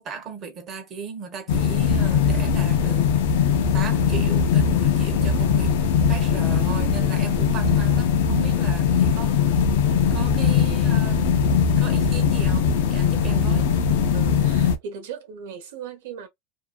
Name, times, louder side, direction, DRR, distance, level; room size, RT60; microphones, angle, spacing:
voice 1, 0.0-3.1 3.7-5.8 6.1-9.4 10.1-11.3 11.8-13.7, right 5 dB, 35° right, 1.1 m, -36 dB
sound 1, 1.5-14.8, left 6 dB, 80° left, 0.5 m, -20 dB
voice 2, 14.1-16.3, right 6 dB, 80° right, 1.0 m, -37 dB
2.7 x 2.3 x 2.2 m
supercardioid pair, 120°, 0 cm